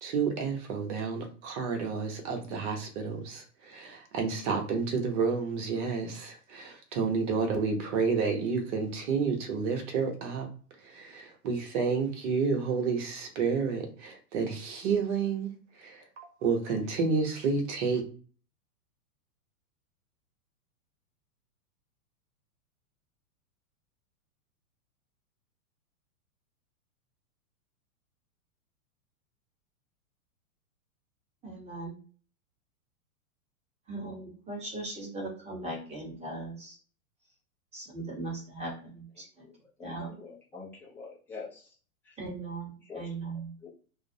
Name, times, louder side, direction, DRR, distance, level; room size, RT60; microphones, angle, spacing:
voice 1, 0.0-10.5 10.8-15.5 15.8-18.0, right 5 dB, 55° right, 0.9 m, -30 dB
voice 2, 31.4-32.0 33.9-36.8 37.7-39.4 39.8-40.2 42.2-43.5, right 2 dB, 15° right, 1.1 m, -39 dB
voice 3, 39.8-41.6 42.8-43.1 43.6-43.7, left 4 dB, 5° left, 0.3 m, -44 dB
2.3 x 2.0 x 2.6 m
hypercardioid pair, 120°, 43 cm